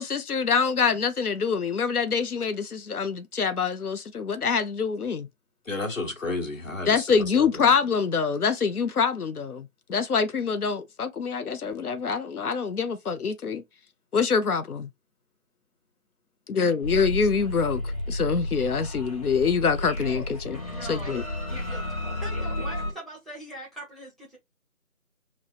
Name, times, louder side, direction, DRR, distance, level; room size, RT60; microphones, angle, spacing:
voice 1, 0.0-5.3 6.9-13.6 14.1-14.9 16.5-20.6 20.9-21.2, left 5 dB, 90° left, 0.6 m, -25 dB
voice 2, 5.6-7.7, left 3 dB, 60° left, 1.6 m, -32 dB
sound 1, 16.8-22.9, left 1 dB, 25° left, 1.1 m, -32 dB
voice 3, 19.9-20.3 20.7-24.4, right 2 dB, ahead, 0.7 m, -42 dB
5.8 x 2.1 x 2.4 m
figure-of-eight pair, 170°, 43 cm